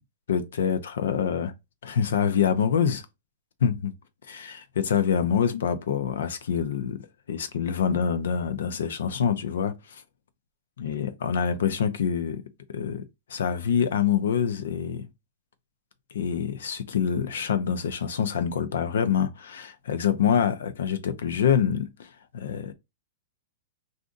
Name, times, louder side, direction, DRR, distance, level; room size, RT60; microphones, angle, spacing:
voice 1, 0.3-1.5 1.8-3.0 3.6-3.9 4.3-7.0 7.3-10.0 10.8-12.4 12.7-15.1 16.1-22.1 22.3-22.7, left 7 dB, 80° left, 0.6 m, -26 dB
2.5 x 2.5 x 3.7 m
supercardioid pair, 175°, 0 cm